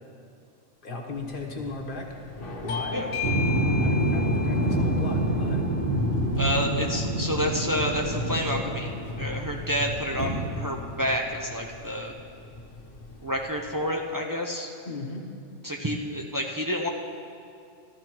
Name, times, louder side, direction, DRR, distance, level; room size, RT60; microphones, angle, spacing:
voice 1, 0.8-2.1 2.6-3.0 3.8-5.6 14.9-15.2, left 3 dB, 45° left, 0 dB, 1.3 m, -35 dB
Thunder / Rain, 1.1-14.0, left 2 dB, 90° left, 1.6 m, -39 dB
Bell / Doorbell, 2.7-7.9, left 6 dB, 60° left, 0.7 m, -37 dB
sound 1, 3.2-9.7 10.2-10.3, right 1 dB, 45° right, 2.1 m, -26 dB
voice 2, 6.4-8.9 9.2-12.1 13.2-14.7 15.6-16.9, equal, 25° right, 0 dB, 0.5 m, -29 dB
14.0 x 13.5 x 3.0 m, 2.5 s
omnidirectional pair, 1.3 m